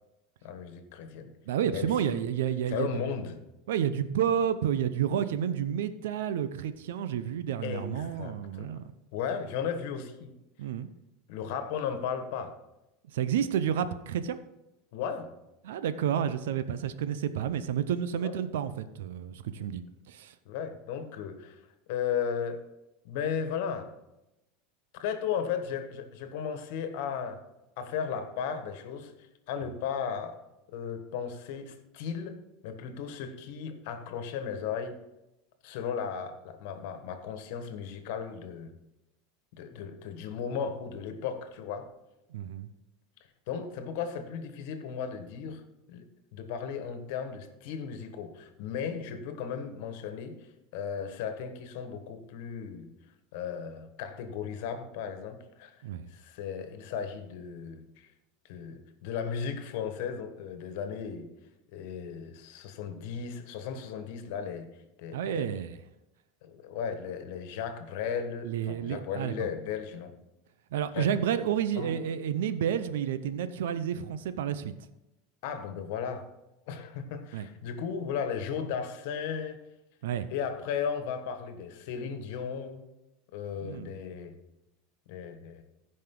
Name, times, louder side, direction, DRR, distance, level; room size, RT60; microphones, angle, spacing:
voice 1, 0.4-1.3 1.7-2.2 2.7-3.4 7.6-8.7 9.1-10.3 11.3-12.5 14.9-15.3 18.2-18.3 20.4-21.6 21.9-22.7 23.0-23.9 24.9-27.4 27.8-30.4 30.7-35.0 35.6-38.7 39.5-41.9 43.5-45.6 45.9-50.4 50.7-52.9 53.3-55.7 56.1-58.1 58.5-61.3 61.7-64.7 65.0-65.6 66.4-70.1 70.9-71.1 71.7-71.9 75.4-76.3 76.7-79.6 80.3-82.9 83.3-84.4 85.1-85.6, left 7 dB, 70° left, 1.4 m, -35 dB
voice 2, 1.5-3.1 3.7-8.8 10.6-10.9 13.1-14.4 15.6-20.3 42.3-42.7 55.8-56.1 65.1-65.8 68.4-69.5 70.7-74.7 77.3-77.5 80.0-80.3 83.6-83.9, right 9 dB, 85° right, 0.6 m, -30 dB
15.5 x 5.3 x 3.8 m
supercardioid pair, 130°, 0 cm